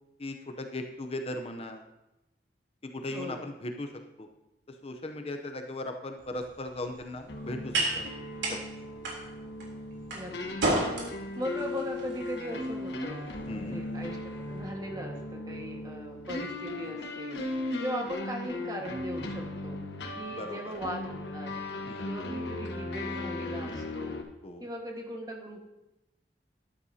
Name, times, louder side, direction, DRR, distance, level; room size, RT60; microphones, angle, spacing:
voice 1, 0.2-1.8 2.9-3.9 4.2-4.3 4.7-8.0 13.5-13.8 20.4-20.7 21.9-22.1 24.4-24.7, left 1 dB, 35° left, 5 dB, 0.7 m, -38 dB
voice 2, 3.1-3.5 10.1-19.8 20.2-21.5 22.0-24.2 24.6-25.6, equal, 20° right, 1 dB, 1.6 m, -39 dB
sound 1, 6.2-14.6, right 1 dB, 85° right, 3.4 m, -35 dB
sound 2, 7.3-24.2, left 2 dB, 75° left, 1.2 m, -37 dB
13.0 x 11.5 x 2.8 m, 0.96 s
head